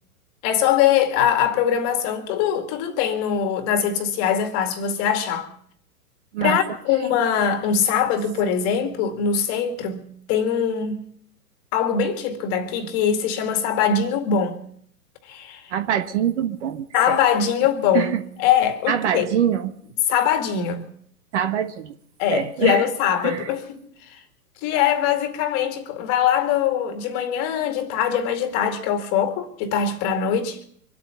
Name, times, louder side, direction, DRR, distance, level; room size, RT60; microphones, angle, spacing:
voice 1, 0.4-5.5 6.4-11.1 11.7-14.6 15.3-15.6 16.9-19.4 20.1-20.9 22.2-23.8 24.6-30.6, left 8 dB, 30° left, 2.0 m, -22 dB
voice 2, 15.7-17.2 17.9-18.2 18.9-19.7 21.3-22.0 22.3-22.8 23.2-23.5, right 9 dB, 45° right, 1.4 m, -24 dB
25.0 x 8.6 x 5.8 m
figure-of-eight pair, 115°, 47 cm